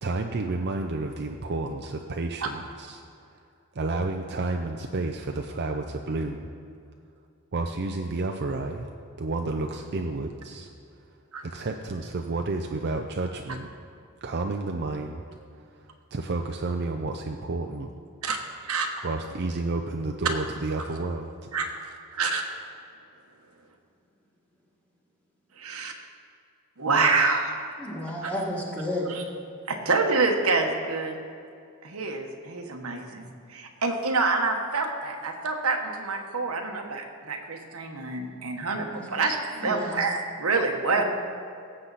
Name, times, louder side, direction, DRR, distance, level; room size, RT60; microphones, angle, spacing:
voice 1, 0.0-3.4 3.7-6.5 7.5-8.9 9.2-10.7 11.4-13.7 14.2-15.2 15.5-17.9 19.0-21.5, right 3 dB, 50° right, 3 dB, 0.5 m, -31 dB
voice 2, 18.6-19.0 21.5-22.4 25.6-25.9 26.8-27.6 28.2-28.3 29.1-29.2 29.7-31.2 31.8-41.0, right 3 dB, 85° right, 3 dB, 1.2 m, -27 dB
voice 3, 27.8-29.1 38.9-39.0 39.5-39.9 40.9-41.0, left 1 dB, 5° left, -4 dB, 1.9 m, -32 dB
17.5 x 7.8 x 4.1 m, 2.4 s
head